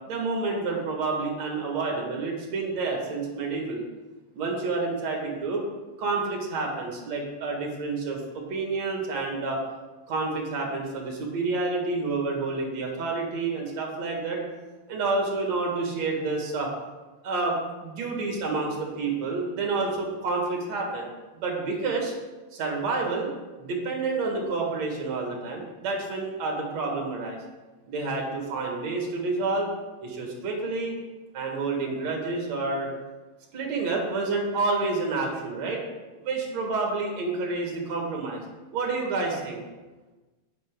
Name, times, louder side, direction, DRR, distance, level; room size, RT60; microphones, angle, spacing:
voice 1, 0.1-3.8 4.3-5.6 6.0-9.6 10.1-14.4 14.9-16.7 17.2-22.1 22.5-23.3 23.6-27.4 27.9-29.7 30.0-31.0 31.3-32.9 33.5-35.8 36.2-38.4 38.7-39.6, right 3 dB, 50° right, 0 dB, 2.4 m, -29 dB
11.0 x 9.2 x 3.8 m, 1.2 s
omnidirectional pair, 4.7 m